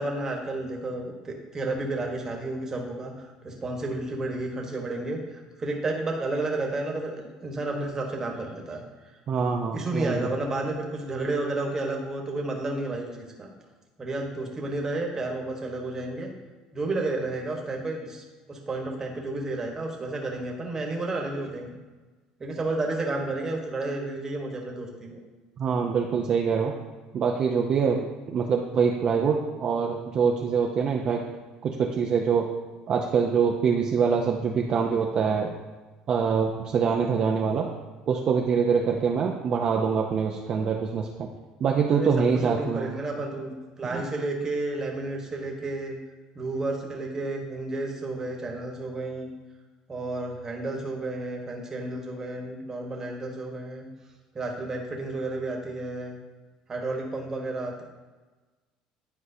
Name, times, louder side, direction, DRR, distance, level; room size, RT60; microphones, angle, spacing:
voice 1, 0.0-8.8 9.7-13.5 14.0-16.3 16.7-21.7 22.4-25.2 41.9-45.9 46.3-49.3 49.9-53.9 54.3-56.2 56.7-57.8, right 2 dB, 25° right, 1 dB, 1.3 m, -31 dB
voice 2, 9.3-10.3 25.6-26.7 27.1-31.2 31.6-32.5 32.9-35.5 36.1-37.7 38.1-41.3 41.6-42.9 43.9-44.0, right 6 dB, 40° right, 0 dB, 0.6 m, -24 dB
10.0 x 4.6 x 2.8 m, 1.3 s
cardioid pair, 125°, 2 cm